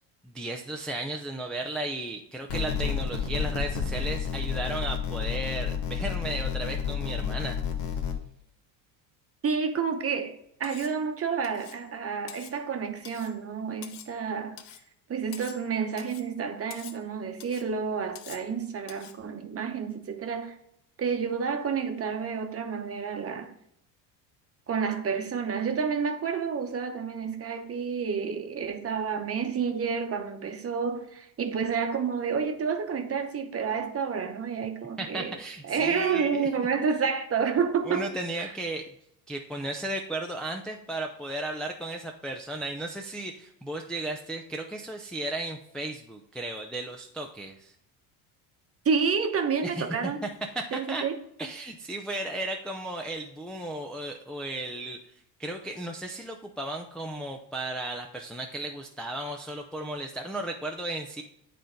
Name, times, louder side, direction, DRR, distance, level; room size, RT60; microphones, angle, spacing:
voice 1, 0.2-7.6 35.0-36.5 37.9-38.9 39.3-47.7 49.6-51.1 51.4-55.1 55.4-61.2, right 2 dB, ahead, 0.5 m, -35 dB
sound 1, 2.5-8.1, left 7 dB, 65° left, 1.4 m, -30 dB
voice 2, 9.4-14.6 15.1-20.6 21.0-23.5 24.7-35.3 35.6-38.1 38.4-38.5 48.8-50.2 50.7-51.1, right 6 dB, 30° right, 1.0 m, -29 dB
Cutlery silverware, 10.6-11.0 11.4-11.8 12.3-12.6 13.0-13.4 13.8-14.2 14.6-14.9 15.3-15.7 16.0-16.3 16.7-17.0 17.4-17.7 18.2-18.5 18.9-19.2, left 10 dB, 80° left, 0.8 m, -46 dB
9.3 x 3.8 x 3.7 m
supercardioid pair, 90°, 48 cm